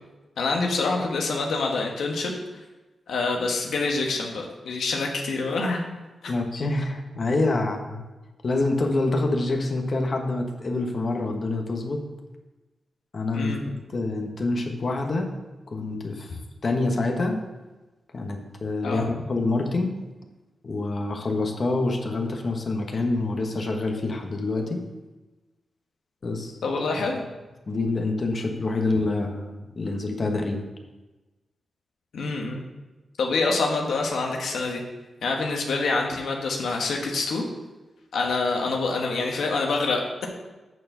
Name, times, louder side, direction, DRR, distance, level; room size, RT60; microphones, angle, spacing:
voice 1, 0.4-2.3 3.1-5.8 13.3-13.6 18.8-19.1 26.6-27.2 32.1-32.6 33.2-34.8 35.2-37.4 38.1-40.3, left 3 dB, 90° left, 1 dB, 1.3 m, -26 dB
voice 2, 6.3-8.1 8.4-12.0 13.1-13.6 13.9-15.3 15.7-17.4 18.1-19.9 20.6-24.8 26.2-26.6 27.7-30.6, left 2 dB, 45° left, 3 dB, 1.2 m, -26 dB
8.6 x 4.6 x 6.7 m, 1.1 s
wide cardioid pair, 95°, 0 cm